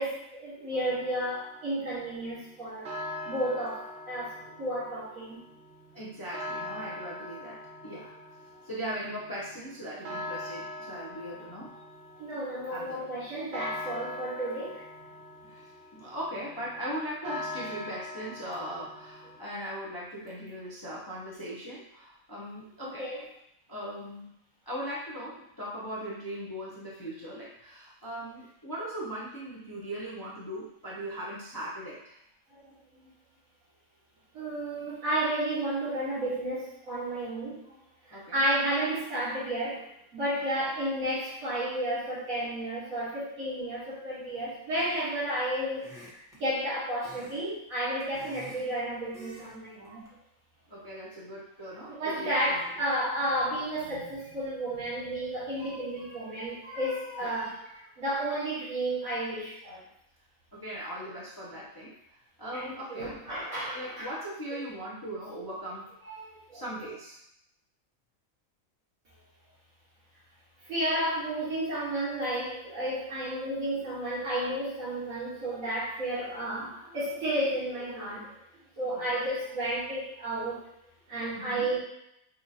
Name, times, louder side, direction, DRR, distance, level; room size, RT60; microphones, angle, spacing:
voice 1, 0.0-2.9 3.3-5.4 12.2-14.8 23.0-23.2 32.5-32.6 32.9-33.1 34.3-37.8 38.1-39.8 40.1-50.0 51.9-59.8 62.5-64.1 64.5-64.7 66.0-66.6 70.7-78.3 78.8-80.6 81.1-81.8, right 1 dB, 70° right, -9 dB, 1.8 m, -32 dB
sound 1, 0.7-19.4, left 1 dB, 55° right, 0.9 m, -43 dB
voice 2, 5.9-8.1 8.6-11.7 12.7-13.0 15.4-23.1 23.7-24.4 24.7-32.2 38.1-38.4 50.7-52.7 57.2-57.4 60.5-63.2 63.7-65.9 66.5-67.2 78.9-79.2 81.3-81.7, equal, 25° left, -6 dB, 0.5 m, -39 dB
sound 2, 44.8-45.2 45.8-46.4 47.0-47.4 47.7-48.7 49.1-49.5 49.8-50.1, equal, 5° right, 0.8 m, -49 dB
5.4 x 2.5 x 2.7 m, 0.77 s
omnidirectional pair, 1.5 m